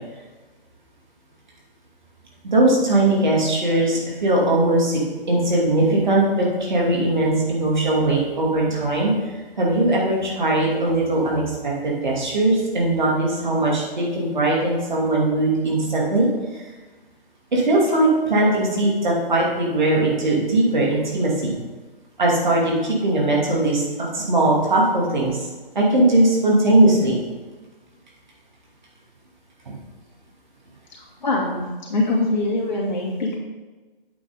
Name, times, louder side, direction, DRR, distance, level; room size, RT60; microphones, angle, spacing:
voice 1, 2.4-16.6 17.5-21.6 22.2-23.8 24.1-25.5 25.7-27.2 29.7-29.8, right 2 dB, 50° right, -4 dB, 2.6 m, -20 dB
voice 2, 31.2-31.6 31.9-33.4, left 2 dB, 50° left, -4 dB, 2.7 m, -22 dB
8.5 x 6.1 x 3.9 m, 1.2 s
figure-of-eight pair, 145°, 29 cm